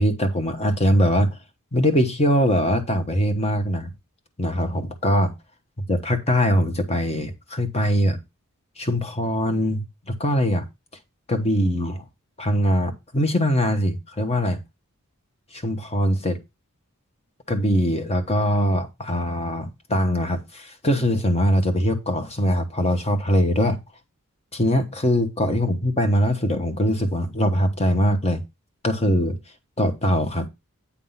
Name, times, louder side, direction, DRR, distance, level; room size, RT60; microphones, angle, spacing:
voice 1, 0.0-1.4 1.7-3.9 4.4-5.3 5.9-8.2 8.8-10.7 11.3-12.0 12.4-14.6 15.5-16.4 17.5-23.8 24.5-28.4 28.8-29.4 29.8-30.5, equal, 30° left, 1.1 m, -22 dB
8.5 x 3.7 x 5.6 m
head